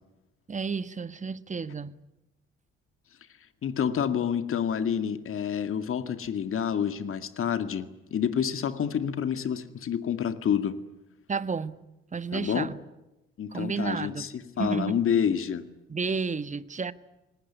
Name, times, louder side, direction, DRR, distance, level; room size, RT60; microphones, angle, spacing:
voice 1, 0.5-1.9 4.1-4.2 11.3-11.8 12.1-12.8 13.5-14.3 14.6-15.0 15.9-16.9, right 5 dB, 25° right, 1.4 m, -31 dB
voice 2, 3.6-10.8 12.3-12.7 13.4-15.7, left 8 dB, 45° left, 2.2 m, -28 dB
27.0 x 19.5 x 10.0 m
hypercardioid pair, 55°, 30 cm